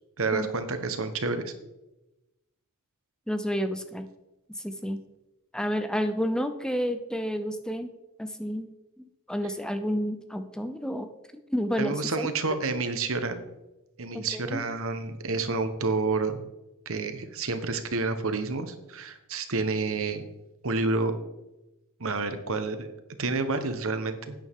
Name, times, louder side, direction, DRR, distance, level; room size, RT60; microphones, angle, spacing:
voice 1, 0.2-1.5 11.8-13.5 14.0-16.4 16.8-20.2 20.6-21.1 22.0-22.9 23.2-24.3, right 3 dB, 65° right, 8 dB, 1.2 m, -29 dB
voice 2, 3.3-4.0 4.6-5.0 5.5-7.9 8.2-8.7 9.0-11.1 11.5-12.3 14.1-14.6, equal, 5° left, 8 dB, 0.5 m, -30 dB
11.0 x 9.3 x 3.7 m, 0.97 s
head